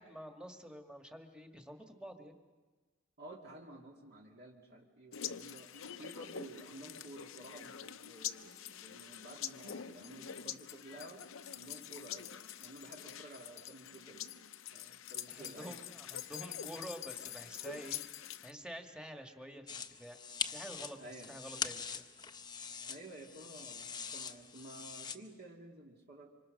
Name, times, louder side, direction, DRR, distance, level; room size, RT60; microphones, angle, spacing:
voice 1, 0.0-2.4 15.3-18.0 18.4-20.2 20.5-22.1, equal, 5° right, 4 dB, 1.6 m, -48 dB
voice 2, 3.2-5.7 6.0-11.2 11.5-12.3 12.6-14.2 14.7-15.8 21.0-21.3 22.9-26.3, right 1 dB, 55° right, 0 dB, 2.3 m, -52 dB
sound 1, 5.1-18.5, left 9 dB, 80° left, 0.8 m, -45 dB
sound 2, 19.7-25.2, left 6 dB, 20° left, 0.8 m, -43 dB
26.0 x 25.5 x 6.5 m, 1.3 s
head